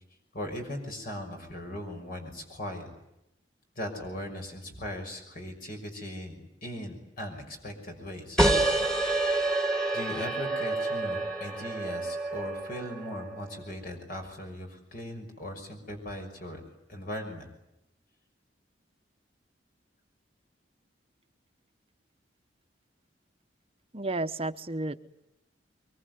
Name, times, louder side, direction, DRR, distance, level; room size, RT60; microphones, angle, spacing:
voice 1, 0.3-2.9 3.8-8.4 9.6-16.6 16.9-17.4, left 1 dB, 50° left, 3 dB, 6.1 m, -39 dB
sound 1, 8.4-13.6, right 2 dB, 5° left, 2.2 m, -28 dB
voice 2, 23.9-25.0, right 2 dB, 30° right, 9 dB, 1.1 m, -32 dB
24.5 x 24.0 x 9.5 m, 0.84 s
head